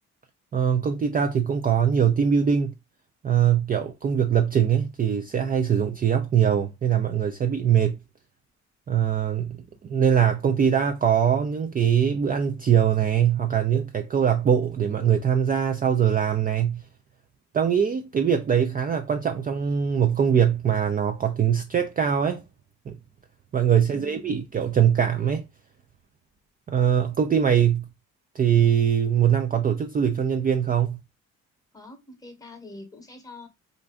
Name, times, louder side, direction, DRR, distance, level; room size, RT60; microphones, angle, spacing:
voice 1, 0.5-2.7 3.2-8.0 8.9-9.6 9.9-16.8 17.5-22.4 22.9-23.0 23.5-25.5 26.7-27.9 28.3-31.0, right 8 dB, 30° right, 0.4 m, -22 dB
voice 2, 23.9-24.4 31.7-33.5, left 2 dB, 10° left, 0.9 m, -44 dB
2.6 x 2.2 x 3.5 m
cardioid pair, 90°, 30 cm